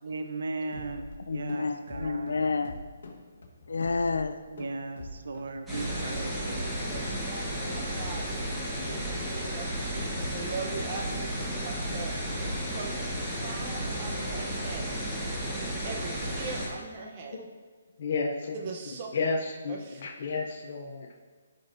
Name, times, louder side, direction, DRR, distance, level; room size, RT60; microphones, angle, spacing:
voice 1, 0.0-2.5 4.5-6.8, right 3 dB, 65° right, 0.7 m, -37 dB
sound 1, 0.7-13.1, left 2 dB, 60° left, 1.6 m, -45 dB
voice 2, 1.3-2.8 3.7-4.4, left 4 dB, 90° left, 0.5 m, -29 dB
sound 2, 5.7-16.7, equal, 5° right, 1.2 m, -33 dB
voice 3, 6.6-8.2 8.8-12.2 12.7-15.0 15.8-17.4 18.5-19.1 19.7-20.0, right 4 dB, 25° right, 0.8 m, -41 dB
voice 4, 18.0-18.6 19.1-19.8 20.0-21.1, left 4 dB, 45° left, 0.6 m, -31 dB
12.5 x 5.1 x 2.6 m
hypercardioid pair, 170°, 0 cm